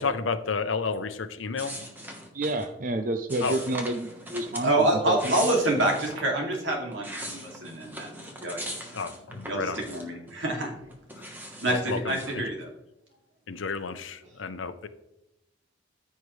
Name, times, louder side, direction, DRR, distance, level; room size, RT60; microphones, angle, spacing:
voice 1, 0.0-1.9 3.4-3.6 8.9-9.8 11.2-11.3 11.7-12.5 13.5-14.9, left 4 dB, 90° left, 11 dB, 0.7 m, -31 dB
sound 1, 1.6-2.7 3.3-4.7 5.0-6.2 6.7-10.3 10.6-12.4, equal, 10° right, 1.2 m, -40 dB
voice 2, 2.3-5.2, right 2 dB, 45° right, 7 dB, 0.6 m, -29 dB
voice 3, 4.6-8.6 9.4-10.7 11.6-12.7, right 1 dB, 80° right, 0 dB, 2.5 m, -27 dB
14.0 x 5.6 x 3.2 m, 0.88 s
head